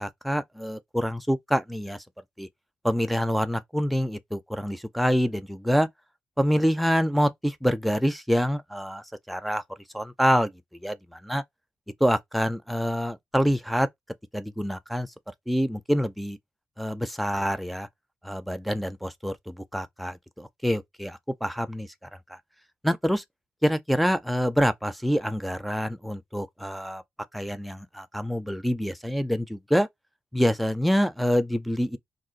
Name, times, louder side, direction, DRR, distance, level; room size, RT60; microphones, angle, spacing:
voice 1, 0.0-2.0 2.4-2.5 2.8-5.9 6.4-9.6 9.9-10.5 10.8-11.4 12.0-13.9 14.3-15.1 15.5-16.4 16.8-17.9 18.2-22.4 22.8-23.2 23.6-27.0 27.3-29.9 30.3-32.0, equal, ahead, 0.3 m, -26 dB
2.4 x 2.2 x 3.7 m
cardioid pair, 95°, 4 cm